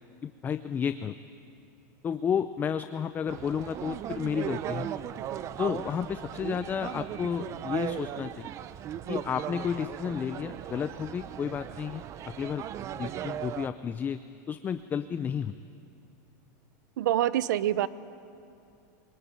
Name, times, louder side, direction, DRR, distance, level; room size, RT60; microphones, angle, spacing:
voice 1, 0.2-1.2 2.0-4.9 5.6-8.5 9.1-12.7 13.0-14.2 14.5-15.6, left 7 dB, 20° left, 11 dB, 0.5 m, -32 dB
sound 1, 3.3-13.7, right 11 dB, 30° right, 0.6 m, -37 dB
voice 2, 17.0-17.9, right 12 dB, 80° right, 17 dB, 0.8 m, -25 dB
23.5 x 19.0 x 9.0 m, 2.5 s
supercardioid pair, 145°, 10 cm